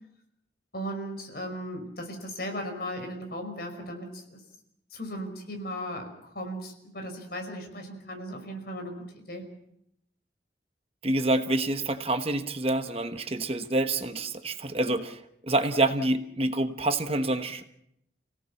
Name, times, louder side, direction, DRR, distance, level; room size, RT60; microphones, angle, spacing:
voice 1, 0.7-4.4 4.9-9.4, equal, 55° left, 4 dB, 5.5 m, -37 dB
voice 2, 11.0-17.6, right 2 dB, 35° right, 8 dB, 1.2 m, -27 dB
29.5 x 17.5 x 7.2 m, 0.77 s
head